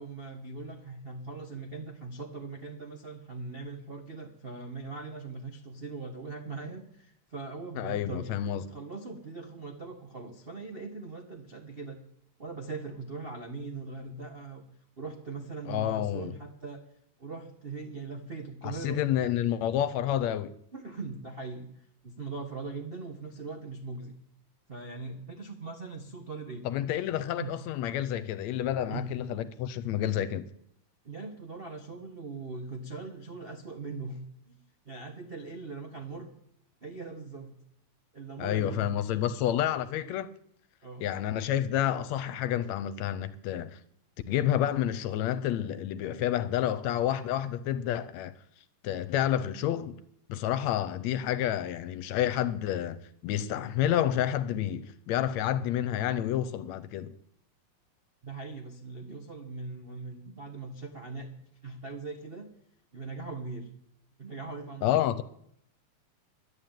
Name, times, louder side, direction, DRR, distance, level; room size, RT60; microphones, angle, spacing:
voice 1, 0.0-8.3 8.6-12.0 12.4-14.6 15.0-16.8 17.2-19.0 20.7-24.2 24.7-26.7 27.4-27.6 28.9-29.2 31.0-34.6 34.8-36.3 36.8-37.6 38.1-38.9 40.8-41.1 58.2-61.3 61.6-62.5 62.9-63.7 64.2-65.1, right 3 dB, 55° right, 0.6 m, -40 dB
voice 2, 7.8-8.6 15.7-16.3 18.6-20.5 26.7-30.5 38.4-40.3 41.0-43.8 44.3-48.3 48.8-50.0 50.3-53.0 53.2-57.2 64.8-65.2, left 11 dB, 75° left, 1.9 m, -29 dB
11.5 x 9.8 x 8.9 m
omnidirectional pair, 3.4 m